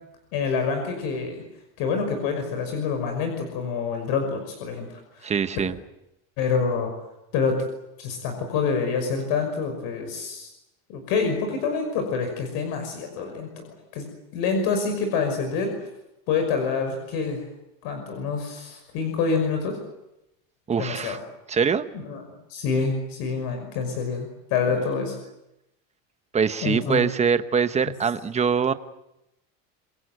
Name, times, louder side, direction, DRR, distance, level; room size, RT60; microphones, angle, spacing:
voice 1, 0.3-1.4 1.8-5.3 6.4-6.9 7.3-7.6 8.0-10.5 10.9-14.1 14.3-15.9 16.3-17.4 17.8-19.8 20.8-21.2 21.9-22.2 22.5-25.2 26.6-27.0, left 5 dB, 65° left, 5 dB, 5.9 m, -27 dB
voice 2, 5.2-5.8 20.7-21.2 21.5-21.9 26.3-28.7, right 6 dB, 15° right, 11 dB, 1.0 m, -23 dB
27.5 x 22.5 x 8.0 m, 0.89 s
cardioid pair, 145°, 39 cm